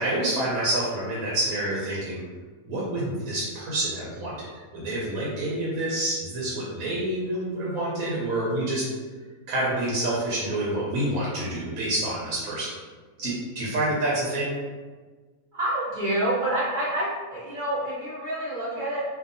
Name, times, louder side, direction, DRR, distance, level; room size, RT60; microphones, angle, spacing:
voice 1, 0.0-2.2 2.7-8.9 9.5-12.7 13.2-14.6, right 1 dB, 85° right, -6 dB, 1.1 m, -28 dB
voice 2, 15.5-19.0, right 1 dB, 60° right, -9 dB, 0.5 m, -27 dB
2.7 x 2.2 x 2.6 m, 1.4 s
omnidirectional pair, 1.5 m